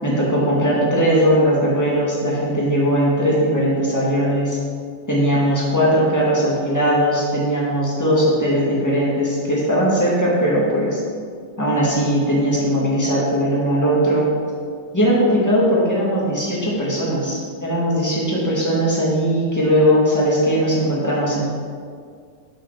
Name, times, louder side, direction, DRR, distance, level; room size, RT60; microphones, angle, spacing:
voice 1, 0.0-4.6 5.1-11.0 11.6-14.3 14.9-21.4, equal, 10° left, -6 dB, 0.9 m, -19 dB
7.6 x 6.5 x 6.4 m, 2.2 s
omnidirectional pair, 4.0 m